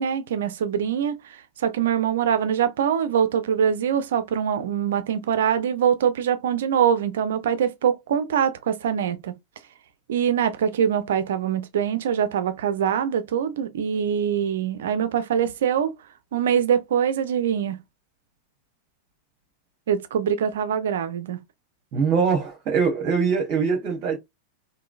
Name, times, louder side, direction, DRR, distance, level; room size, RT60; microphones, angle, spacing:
voice 1, 0.0-9.3 10.1-15.9 16.3-17.8 19.9-21.4, right 8 dB, 60° right, 0.6 m, -23 dB
voice 2, 21.9-24.2, right 5 dB, 40° right, 1.1 m, -22 dB
3.7 x 2.7 x 2.4 m
figure-of-eight pair, 90°, 0 cm